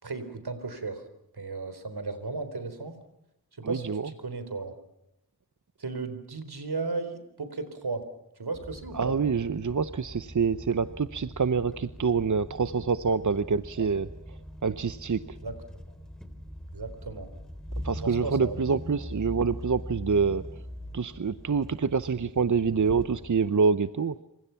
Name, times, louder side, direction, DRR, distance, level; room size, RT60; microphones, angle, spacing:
voice 1, 0.0-1.0 1.3-2.9 3.6-4.8 5.8-8.0 8.4-9.2 13.8-13.9 15.4-15.6 16.7-17.3 17.9-18.6, right 3 dB, 80° right, 10 dB, 4.0 m, -35 dB
voice 2, 3.6-4.1 8.9-14.1 14.6-15.4 17.8-20.4 20.9-24.2, right 5 dB, 50° right, 13 dB, 0.8 m, -26 dB
sound 1, 8.5-23.5, equal, ahead, 3.6 m, -42 dB
28.0 x 26.0 x 5.8 m, 0.82 s
wide cardioid pair, 60°, 38 cm